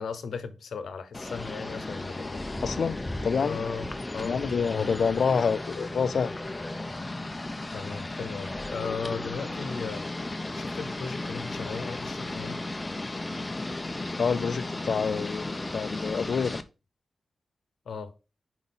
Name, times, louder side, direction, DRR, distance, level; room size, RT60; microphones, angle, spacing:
voice 1, 0.0-2.4 3.4-3.9 4.1-4.4 7.7-10.2 10.5-12.7 17.9-18.1, left 5 dB, 85° left, 0.8 m, -36 dB
sound 1, 1.1-16.6, left 2 dB, 20° left, 0.6 m, -35 dB
voice 2, 2.6-3.0 3.2-3.6 4.2-6.4 14.2-16.6, left 6 dB, 65° left, 0.4 m, -27 dB
4.9 x 4.0 x 5.4 m
wide cardioid pair, 110°, 0 cm